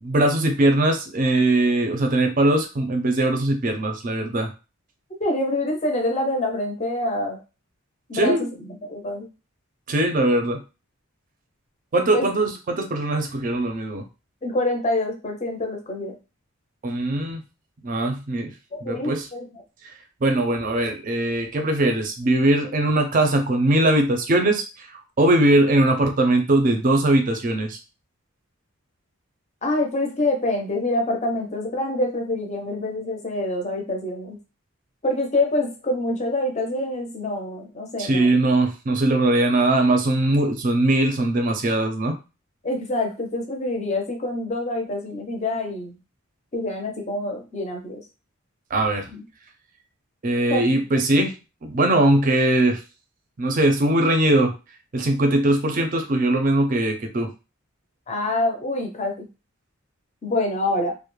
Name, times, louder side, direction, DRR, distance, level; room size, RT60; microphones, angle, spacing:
voice 1, 0.0-4.5 8.1-8.5 9.9-10.6 11.9-14.0 16.8-17.4 17.8-18.5 18.8-19.3 20.2-24.9 25.2-27.8 38.0-42.2 48.7-49.1 50.2-51.3 51.6-52.8 53.4-54.5 54.9-57.3, right 1 dB, 40° right, 5 dB, 0.4 m, -20 dB
voice 2, 5.2-7.4 8.1-9.3 12.1-12.4 14.4-16.2 18.7-19.5 29.6-34.4 35.0-38.3 42.6-46.0 46.5-48.0 49.1-49.2 50.5-50.6 58.1-59.3 60.2-60.9, left 2 dB, 30° left, 2 dB, 0.5 m, -26 dB
2.3 x 2.0 x 3.0 m, 0.30 s
head